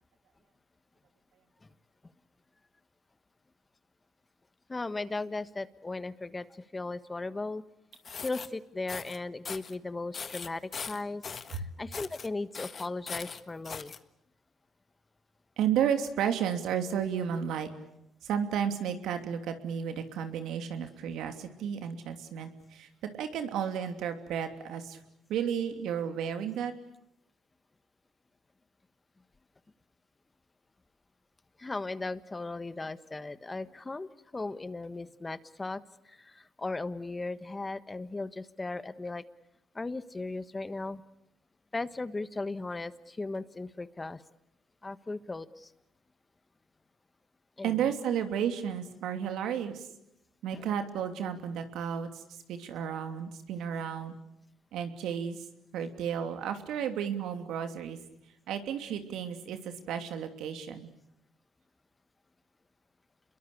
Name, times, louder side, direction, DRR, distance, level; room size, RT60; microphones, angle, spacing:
voice 1, 4.7-7.6 8.2-11.2 11.5-14.0 31.6-39.2 39.7-41.0 41.7-44.2 44.8-45.7 47.6-47.9 50.5-50.7, left 3 dB, 20° left, 14 dB, 1.3 m, -37 dB
sound 1, 7.9-8.5 8.9-9.2 9.4-9.7 10.1-11.6 11.9-12.3 12.5-14.0, left 6 dB, 40° left, 1.5 m, -40 dB
voice 2, 15.6-17.7 18.2-22.9 23.2-25.0 25.3-26.7 47.6-49.9 50.4-54.1 54.7-55.4 55.7-58.0 58.5-60.9, right 8 dB, 75° right, 7 dB, 2.9 m, -32 dB
28.5 x 22.5 x 8.5 m, 0.81 s
cardioid pair, 85°, 0 cm